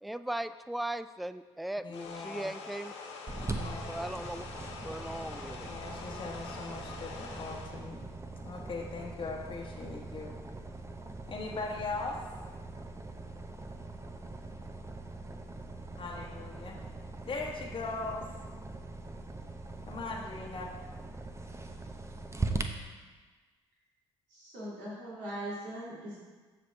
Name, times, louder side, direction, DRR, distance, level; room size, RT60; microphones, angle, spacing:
voice 1, 0.0-2.9 3.9-4.4 4.8-5.7, right 1 dB, ahead, 13 dB, 0.3 m, -38 dB
voice 2, 1.8-2.5 3.5-3.9 5.6-8.1 8.4-10.4 11.3-12.2 16.0-16.8 17.2-18.3 19.9-20.7, left 3 dB, 35° left, -2 dB, 1.3 m, -39 dB
sound 1, 1.9-7.8, left 4 dB, 80° left, 0.9 m, -45 dB
sound 2, 3.3-22.6, right 3 dB, 20° right, 0.8 m, -41 dB
voice 3, 24.3-26.2, right 1 dB, 70° right, -7 dB, 2.8 m, -40 dB
14.0 x 5.1 x 3.4 m, 1.4 s
figure-of-eight pair, 45°, 14 cm